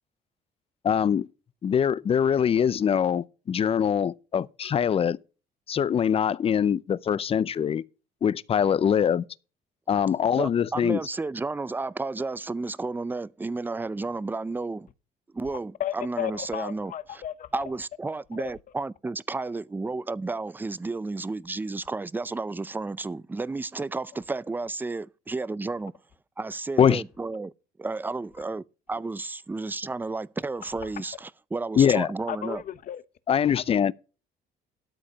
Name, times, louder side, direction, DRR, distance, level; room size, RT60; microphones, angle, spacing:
voice 1, 0.8-1.3 1.6-5.2 5.7-7.8 8.2-9.3 9.9-11.0 26.8-27.0 31.8-32.1 33.3-33.9, left 8 dB, 35° left, 0.5 m, -23 dB
voice 2, 10.3-14.9 15.3-17.2 17.5-25.9 26.4-27.5 27.8-32.6, right 3 dB, 10° right, 0.5 m, -32 dB
voice 3, 15.8-17.6 18.4-18.5 32.3-33.0 33.5-33.9, left 11 dB, 50° left, 1.0 m, -34 dB
13.0 x 4.9 x 6.7 m
cardioid pair, 110°, 17 cm